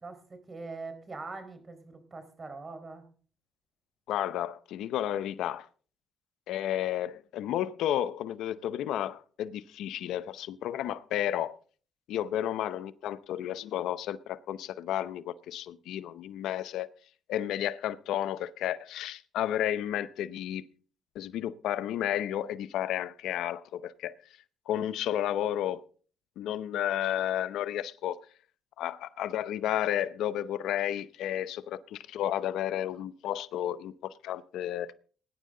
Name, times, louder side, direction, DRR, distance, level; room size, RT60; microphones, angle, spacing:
voice 1, 0.0-3.0, right 3 dB, 35° right, 4.4 m, -42 dB
voice 2, 4.1-5.7 6.5-11.6 12.1-16.9 17.3-20.6 21.2-24.1 24.7-25.8 26.4-28.2 28.8-34.9, left 11 dB, 85° left, 0.6 m, -32 dB
20.0 x 10.0 x 3.8 m
cardioid pair, 90°, 0 cm